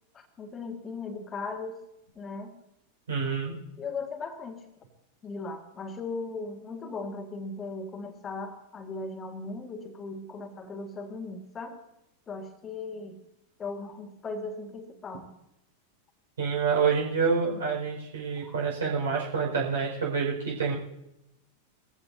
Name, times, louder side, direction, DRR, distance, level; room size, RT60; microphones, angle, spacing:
voice 1, 0.1-1.8 2.1-2.5 3.8-4.6 5.2-11.8 12.3-13.2 13.6-15.3 18.4-18.6 18.8-18.9, left 3 dB, 20° left, 4 dB, 1.8 m, -38 dB
voice 2, 3.1-3.6 16.4-20.7, right 5 dB, 65° right, -1 dB, 5.3 m, -27 dB
20.0 x 15.5 x 2.8 m, 0.85 s
figure-of-eight pair, 90°, 0 cm